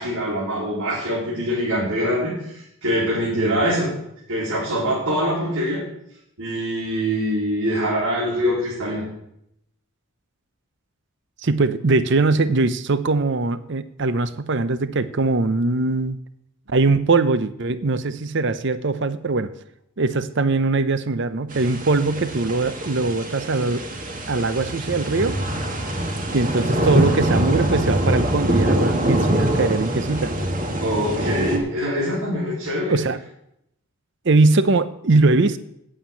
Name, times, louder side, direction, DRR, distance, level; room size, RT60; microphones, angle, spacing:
voice 1, 0.0-3.9 4.3-5.8 6.4-9.0 30.8-33.0, equal, 90° right, -7 dB, 3.7 m, -24 dB
voice 2, 11.4-16.2 16.7-19.5 20.0-23.9 24.3-25.4 26.3-30.3 32.9-33.2 34.2-35.6, right 3 dB, 55° right, 13 dB, 0.6 m, -21 dB
sound 1, 21.5-31.6, right 1 dB, 35° right, 1.8 m, -24 dB
8.7 x 7.4 x 8.6 m, 0.77 s
head